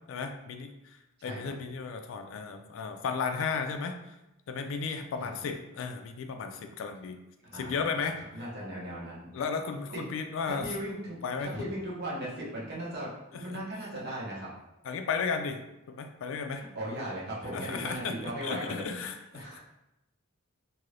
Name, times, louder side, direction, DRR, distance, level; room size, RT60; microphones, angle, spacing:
voice 1, 0.1-4.2 4.5-7.2 7.5-8.2 9.3-10.6 11.2-11.7 13.5-13.6 14.8-15.6 15.9-16.6 17.5-19.5, left 5 dB, 70° left, 6 dB, 0.3 m, -34 dB
voice 2, 7.4-8.1 8.3-9.3 9.9-10.0 10.5-14.5 16.6-18.9 19.3-19.8, right 1 dB, 55° right, -6 dB, 1.0 m, -37 dB
2.7 x 2.5 x 3.2 m, 0.92 s
head